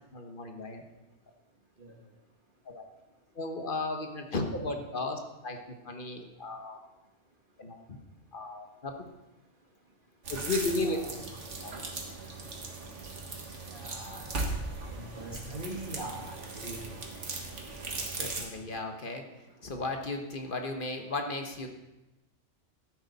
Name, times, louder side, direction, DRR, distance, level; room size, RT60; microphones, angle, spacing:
voice 1, 0.1-0.8 2.6-2.8 3.3-6.8 7.6-7.8 8.3-8.9 10.3-11.0 11.6-11.7 18.2-19.2 19.6-21.7, left 2 dB, 45° left, 4 dB, 1.3 m, -35 dB
sound 1, 10.2-18.4, right 3 dB, 70° right, 1.9 m, -38 dB
voice 2, 10.8-11.1 13.7-14.2 14.9-16.8, right 1 dB, 45° right, 0 dB, 1.6 m, -41 dB
13.5 x 9.0 x 4.1 m, 1.0 s
omnidirectional pair, 1.3 m